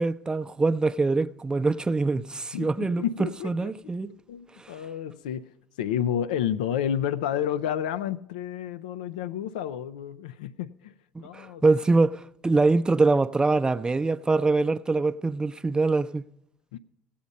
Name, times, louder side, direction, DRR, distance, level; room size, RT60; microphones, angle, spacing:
voice 1, 0.0-4.1 4.6-4.8 11.1-16.2, right 3 dB, 20° right, 0.6 m, -24 dB
voice 2, 2.5-3.7 4.3-5.5 5.8-10.9 11.2-11.8 16.7-16.8, left 9 dB, 85° left, 0.4 m, -30 dB
16.5 x 8.5 x 5.3 m
hypercardioid pair, 70°, 4 cm